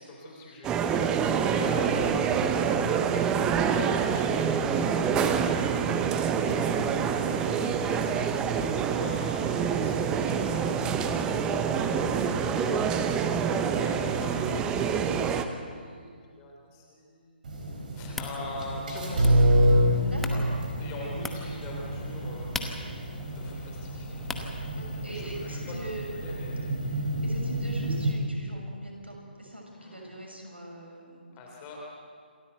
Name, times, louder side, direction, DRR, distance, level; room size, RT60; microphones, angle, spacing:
voice 1, 0.0-2.4 3.9-8.3 8.9-13.0 13.8-15.3 15.6-17.4 17.9-19.4 20.3-20.4 20.8-22.5 23.0-24.1 24.5-24.7 25.0-25.7 26.1-26.7 29.7-30.1 31.3-31.9, left 2 dB, 25° left, -1 dB, 3.2 m, -43 dB
sound 1, 0.6-15.4, right 7 dB, 15° right, 0.8 m, -26 dB
sound 2, 17.4-28.1, right 1 dB, 45° right, 4.4 m, -28 dB
sound 3, 18.0-25.6, left 3 dB, 5° left, 1.0 m, -42 dB
voice 2, 20.0-20.4 21.0-21.2 24.7-26.4 26.8-31.2, right 1 dB, 80° right, 0 dB, 6.2 m, -42 dB
27.0 x 13.5 x 8.0 m, 2.1 s
figure-of-eight pair, 135°, 6 cm